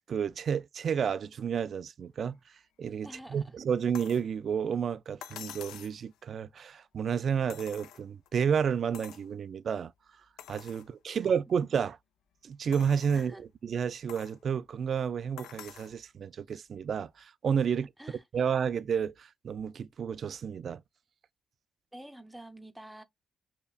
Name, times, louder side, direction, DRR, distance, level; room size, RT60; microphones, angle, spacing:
voice 1, 0.1-2.4 2.8-9.9 10.5-12.0 12.4-17.9 18.3-20.8, right 7 dB, 55° right, 0.3 m, -31 dB
voice 2, 3.0-3.6 11.1-11.3 13.1-13.4 17.7-18.5 21.9-23.0, right 1 dB, 5° right, 0.6 m, -49 dB
sound 1, 3.9-4.3 5.2-6.0 7.5-8.3 8.9-9.3 9.8-9.9 10.4-10.9 11.5-11.6 12.7-13.3 14.1-14.4 15.4-16.0 17.2-17.3, left 10 dB, 85° left, 0.5 m, -47 dB
5.5 x 2.2 x 2.3 m
cardioid pair, 90°, 0 cm